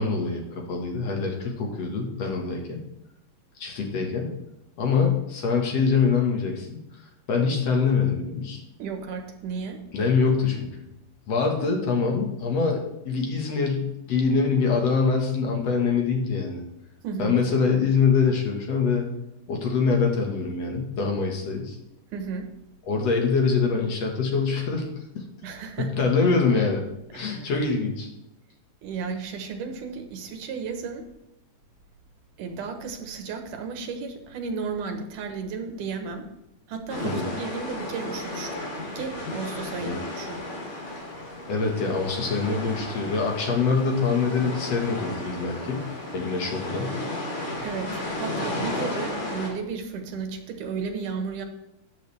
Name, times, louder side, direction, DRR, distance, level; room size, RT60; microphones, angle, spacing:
voice 1, 0.0-2.8 3.6-4.3 4.8-6.8 7.3-8.6 9.9-10.7 11.3-12.8 13.1-16.6 17.2-19.1 19.5-21.8 22.9-24.9 25.1-25.2 25.8-26.8 27.1-28.1 37.0-37.4 39.8-40.0 41.5-45.8 46.1-46.9, left 5 dB, 55° left, 1 dB, 2.6 m, -24 dB
voice 2, 8.8-9.8 11.4-11.5 17.0-17.3 22.1-22.5 25.4-26.1 27.4-27.5 28.8-31.1 32.4-36.3 36.7-38.7 39.0-40.4 47.6-51.5, right 5 dB, 80° right, 6 dB, 2.8 m, -33 dB
sound 1, 36.9-49.5, left 2 dB, 85° left, 4.9 m, -34 dB
13.0 x 10.5 x 3.5 m, 0.87 s
omnidirectional pair, 3.7 m